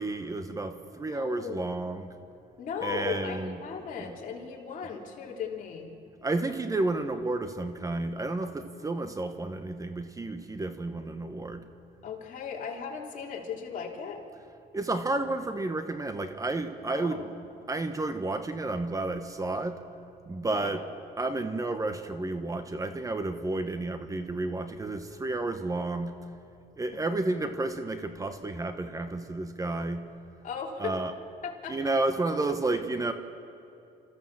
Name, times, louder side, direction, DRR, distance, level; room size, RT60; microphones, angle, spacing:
voice 1, 0.0-2.1 2.8-3.6 4.0-4.2 6.2-11.7 14.7-17.2 17.7-19.8 20.3-20.8 21.2-26.1 26.8-30.0 30.8-31.1 31.7-33.1, right 2 dB, 20° right, 8 dB, 1.1 m, -31 dB
voice 2, 1.1-1.6 2.6-5.9 12.0-14.2 16.9-17.3 20.4-20.9 30.4-31.0 31.4-31.7, left 6 dB, 50° left, -1 dB, 3.2 m, -37 dB
28.5 x 14.0 x 7.5 m, 2.7 s
cardioid pair, 110°, 17 cm